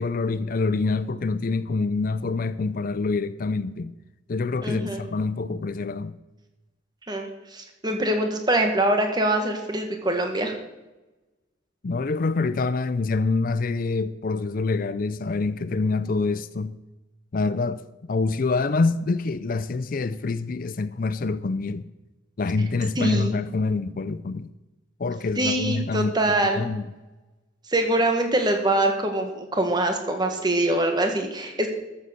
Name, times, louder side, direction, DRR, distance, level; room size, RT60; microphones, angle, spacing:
voice 1, 0.0-3.9 4.3-6.2 11.8-16.8 17.3-17.8 18.1-21.9 22.4-24.5 25.0-26.1 26.5-26.9, left 3 dB, 50° left, 0.5 m, -26 dB
voice 2, 4.6-5.0 7.1-10.5 23.0-23.3 25.4-26.7 27.7-31.7, right 1 dB, 25° right, 1.8 m, -24 dB
13.5 x 7.8 x 6.7 m
head